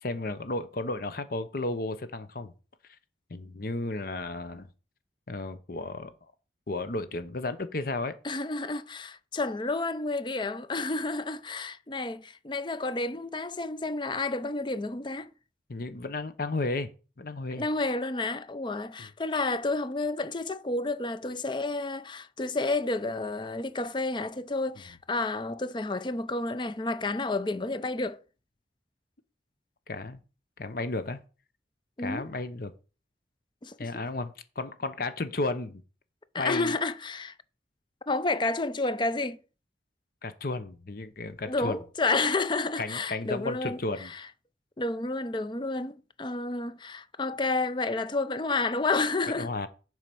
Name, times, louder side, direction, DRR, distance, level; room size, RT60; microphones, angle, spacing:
voice 1, 0.0-2.5 3.3-4.7 5.3-6.1 6.7-8.1 15.7-16.9 17.2-17.7 19.0-19.1 29.9-30.2 30.6-31.2 32.0-32.7 33.8-35.8 36.4-36.8 40.2-41.8 42.8-44.1 49.4-49.7, left 2 dB, 55° left, 0.8 m, -33 dB
voice 2, 8.2-15.3 17.5-28.2 32.0-32.3 33.6-34.0 36.3-37.3 38.1-39.4 41.5-44.2 44.8-49.5, left 3 dB, 25° left, 0.5 m, -30 dB
7.4 x 4.9 x 6.9 m
head